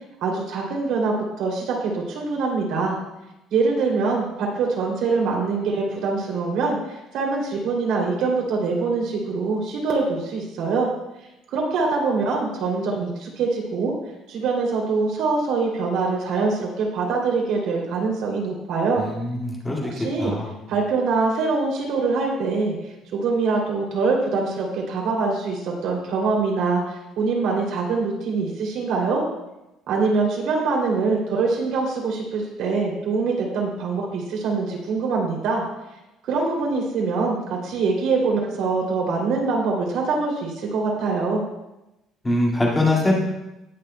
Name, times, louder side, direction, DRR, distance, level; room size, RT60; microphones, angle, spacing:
voice 1, 0.2-3.0 3.5-10.9 11.5-13.9 14.3-19.0 19.9-20.3 20.7-22.7 23.1-29.2 29.9-35.6 36.2-41.4, right 4 dB, 65° right, -1 dB, 2.8 m, -24 dB
voice 2, 19.0-19.9 20.2-20.5 42.2-43.1, left 1 dB, 10° left, -3 dB, 2.0 m, -22 dB
19.5 x 6.8 x 2.2 m, 0.95 s
cardioid pair, 170°, 0 cm